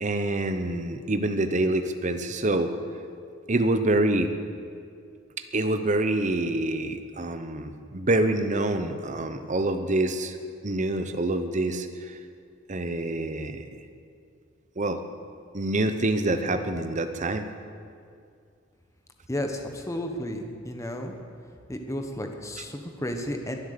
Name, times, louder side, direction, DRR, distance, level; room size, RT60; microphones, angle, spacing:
voice 1, 0.0-2.7 3.5-4.3 5.5-10.4 10.6-12.1 12.7-13.8 14.8-15.0 15.5-17.5, right 2 dB, 40° right, 8 dB, 0.9 m, -26 dB
voice 2, 19.3-21.1 21.7-23.6, left 1 dB, 15° left, 4 dB, 1.2 m, -32 dB
22.0 x 8.0 x 6.8 m, 2.3 s
head